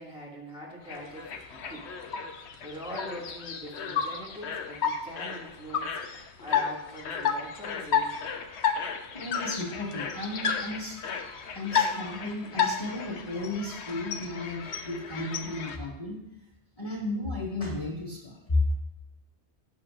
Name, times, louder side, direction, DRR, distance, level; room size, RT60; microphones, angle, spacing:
voice 1, 0.0-1.9 2.6-8.1, equal, 5° right, -5 dB, 2.1 m, -43 dB
sound 1, 0.9-15.8, left 7 dB, 75° left, 1.1 m, -32 dB
voice 2, 9.1-11.0 11.5-16.2 16.8-18.6, left 2 dB, 30° left, -5 dB, 1.9 m, -33 dB
16.5 x 7.0 x 2.5 m, 0.84 s
omnidirectional pair, 1.2 m